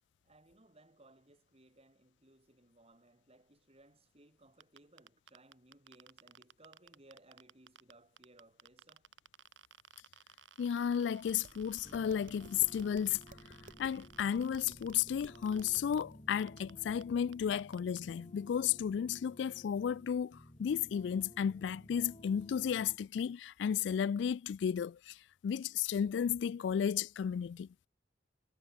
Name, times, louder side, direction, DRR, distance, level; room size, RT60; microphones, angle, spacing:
voice 1, 0.2-9.1, right 2 dB, 35° right, 4.4 m, -63 dB
sound 1, 4.6-7.9 8.2-16.0 16.3-16.7 17.0-17.1 17.3-18.0, right 8 dB, 85° right, 4.0 m, -58 dB
voice 2, 10.6-13.2 13.8-27.7, left 8 dB, 70° left, 0.3 m, -33 dB
Tap, 11.2-16.1, right 2 dB, 50° right, 2.1 m, -58 dB
sound 2, 11.8-23.0, left 1 dB, 30° left, 1.9 m, -56 dB
head